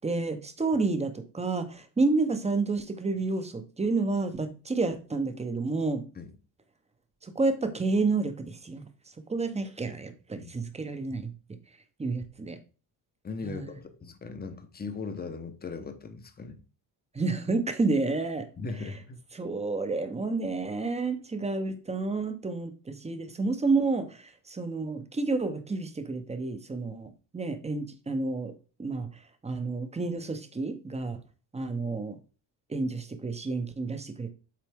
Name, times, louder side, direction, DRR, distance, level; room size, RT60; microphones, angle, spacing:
voice 1, 0.0-6.0 7.2-8.8 9.3-11.3 12.0-12.6 13.4-13.7 17.1-18.5 19.3-28.5 28.8-29.1 29.4-31.2 31.5-32.2 32.7-34.3, right 3 dB, 15° right, 0.7 m, -30 dB
voice 2, 13.2-16.6 18.6-19.2, left 4 dB, 20° left, 0.8 m, -38 dB
7.5 x 4.1 x 3.5 m
cardioid pair, 135°, 43 cm